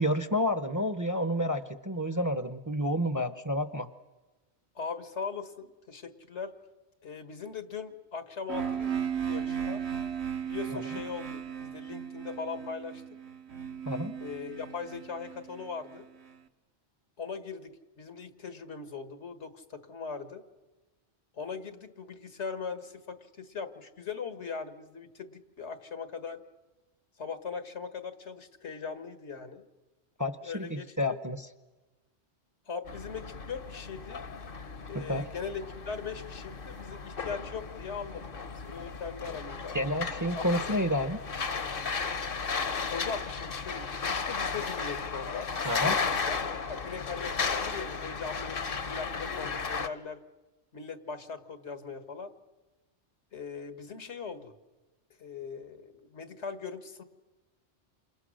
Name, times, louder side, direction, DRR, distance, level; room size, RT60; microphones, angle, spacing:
voice 1, 0.0-3.9 10.7-10.8 13.9-14.2 30.2-31.5 34.9-35.3 39.7-41.2 45.6-46.0, equal, 20° right, 11 dB, 0.8 m, -30 dB
voice 2, 4.8-6.5 7.0-9.8 10.4-13.0 14.2-16.1 17.2-20.4 21.3-26.4 27.2-29.6 30.4-31.2 32.7-34.2 34.9-39.8 40.3-40.5 42.9-46.3 46.7-50.2 50.7-52.3 53.3-54.5 55.2-57.0, left 5 dB, 80° left, 9 dB, 1.8 m, -40 dB
sound 1, 8.5-16.3, right 8 dB, 70° right, 1.5 m, -36 dB
sound 2, 32.9-49.9, left 5 dB, 55° left, 1.2 m, -35 dB
28.5 x 27.0 x 6.4 m, 1.2 s
omnidirectional pair, 1.2 m